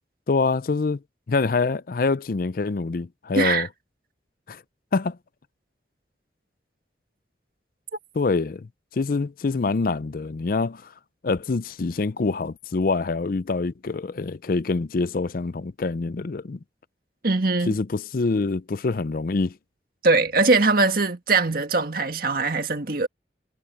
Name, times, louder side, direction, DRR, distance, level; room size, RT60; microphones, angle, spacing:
voice 1, 0.3-1.0 1.3-3.7 4.5-4.6 4.9-5.2 8.2-8.7 8.9-10.9 11.2-16.6 17.7-19.5, left 3 dB, 50° left, 0.5 m, -25 dB
voice 2, 3.3-3.7 17.2-17.8 20.0-23.1, right 3 dB, 50° right, 1.8 m, -21 dB
head